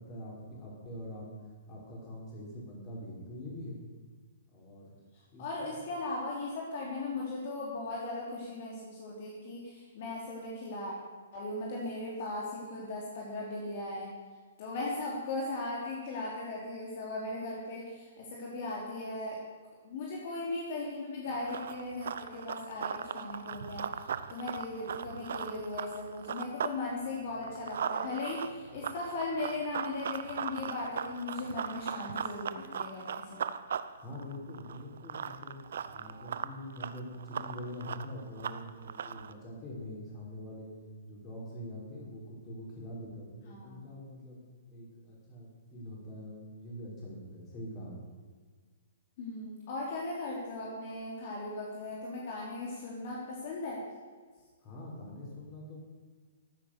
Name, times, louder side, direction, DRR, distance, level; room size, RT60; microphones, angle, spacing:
voice 1, 0.0-3.8 4.5-4.9 5.3-5.7 34.0-35.6 35.9-40.7 41.0-44.4 44.7-48.1 54.6-55.8, left 1 dB, 25° left, -4 dB, 5.4 m, -44 dB
voice 2, 5.4-10.9 11.3-14.1 14.6-19.4 19.8-33.4 43.5-43.8 49.2-53.8, left 2 dB, 50° left, -4 dB, 3.4 m, -38 dB
Run, 21.3-26.8 27.1-39.3, right 7 dB, 70° right, 0.7 m, -38 dB
14.5 x 9.1 x 6.7 m, 1.5 s
hypercardioid pair, 145°, 0 cm